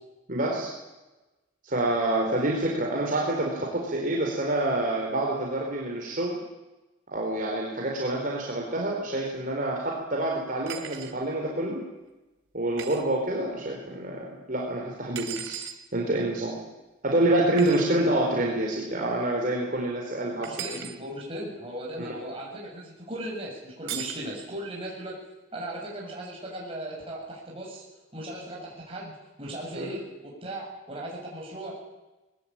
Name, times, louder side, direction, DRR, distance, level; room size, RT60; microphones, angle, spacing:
voice 1, 0.3-0.7 1.6-6.4 7.1-11.8 12.5-15.6 15.9-16.6 17.0-20.5 22.0-22.1 29.7-29.9, right 1 dB, 45° right, -2 dB, 4.2 m, -27 dB
sound 1, 10.7-11.1 12.8-13.0 15.1-15.8 17.6-17.8 20.4-21.0 23.9-24.2, right 9 dB, 80° right, 2.6 m, -37 dB
voice 2, 20.5-25.2 25.5-27.8 28.1-31.8, right 1 dB, 30° right, -3 dB, 6.9 m, -37 dB
21.0 x 19.5 x 8.8 m, 1.1 s
head